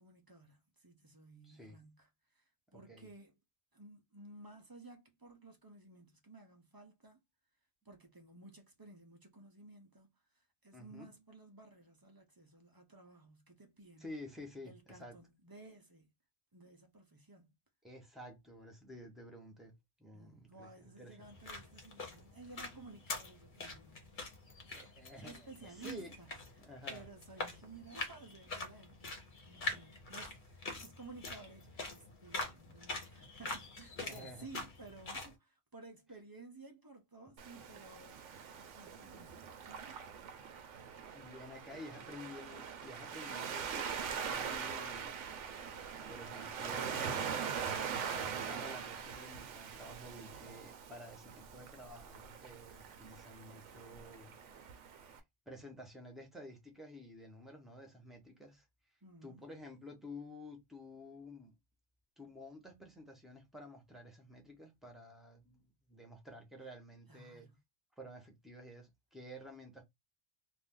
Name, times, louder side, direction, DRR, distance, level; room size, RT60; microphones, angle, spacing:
voice 1, 0.0-3.4 3.7-7.2 7.8-14.1 14.6-16.1 16.5-17.6 20.1-24.3 24.6-24.8 25.2-29.2 29.4-38.3 38.7-40.0 59.0-59.5 67.1-67.6, right 3 dB, 25° right, 0.5 m, -55 dB
voice 2, 1.4-1.8 2.7-3.1 10.7-11.1 14.0-15.2 17.8-19.7 20.0-21.3 24.7-26.1 26.6-27.1 34.1-34.5 41.1-45.1 46.1-47.4 48.1-54.3 55.1-55.2 55.5-58.6 59.2-61.6 62.2-67.5 68.0-69.8, left 1 dB, ahead, 0.8 m, -51 dB
sound 1, 21.2-35.3, left 2 dB, 45° left, 1.0 m, -45 dB
Waves surf, 37.4-55.2, right 7 dB, 90° right, 1.0 m, -42 dB
2.6 x 2.5 x 3.6 m
omnidirectional pair, 1.2 m